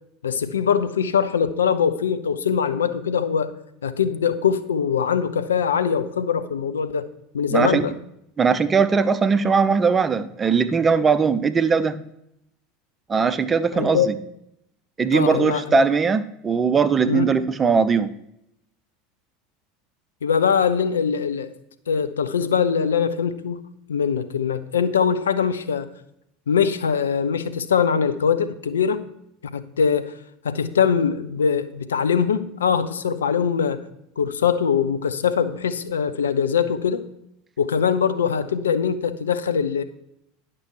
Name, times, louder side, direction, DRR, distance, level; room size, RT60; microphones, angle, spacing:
voice 1, 0.2-3.5 3.8-7.1 7.3-8.0 13.7-14.1 15.1-15.8 17.1-17.3 20.2-21.5 21.9-23.6 23.9-25.9 26.5-29.1 29.5-30.1 30.4-33.8 34.2-37.0 37.6-39.8, left 7 dB, 70° left, 0.5 m, -22 dB
voice 2, 7.5-7.8 8.4-11.9 13.1-14.1 15.0-18.1, right 5 dB, 20° right, 0.6 m, -20 dB
10.5 x 6.0 x 4.7 m
figure-of-eight pair, 75°, 0 cm